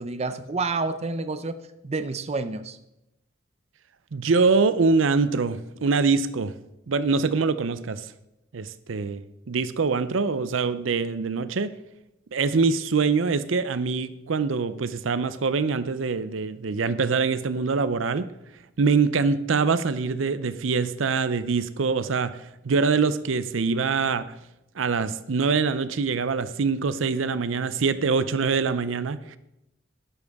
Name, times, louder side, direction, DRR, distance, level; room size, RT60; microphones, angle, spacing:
voice 1, 0.0-1.5 1.8-2.8, right 3 dB, 35° right, 11 dB, 0.5 m, -29 dB
voice 2, 4.1-6.5 6.9-8.1 8.5-11.7 12.3-18.3 18.8-22.4 22.6-24.3 24.8-29.4, right 4 dB, 80° right, 14 dB, 0.6 m, -24 dB
12.5 x 11.0 x 3.6 m, 0.88 s
head